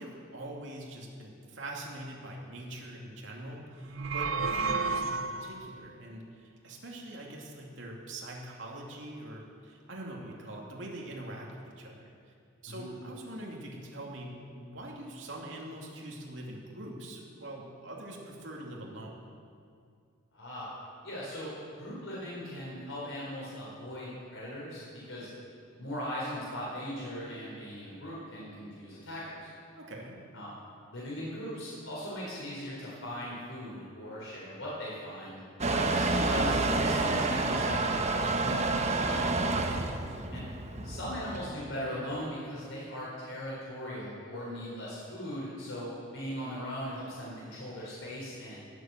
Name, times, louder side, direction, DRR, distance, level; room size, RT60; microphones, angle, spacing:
voice 1, 0.0-12.3 12.6-19.2 29.7-30.2 39.7-40.0, right 1 dB, 70° right, -2 dB, 2.7 m, -43 dB
sound 1, 3.8-5.7, right 4 dB, 85° right, 0.6 m, -31 dB
voice 2, 20.3-20.7 21.0-21.5 21.8-25.3 25.8-29.5 30.3-30.5 30.9-35.4 35.7-39.2 40.3-40.4 40.8-48.6, equal, 75° left, -7 dB, 4.2 m, -39 dB
Motor vehicle (road) / Engine starting / Accelerating revving vroom, 35.6-41.5, right 2 dB, 35° right, 0.9 m, -29 dB
19.0 x 7.7 x 7.5 m, 2.3 s
head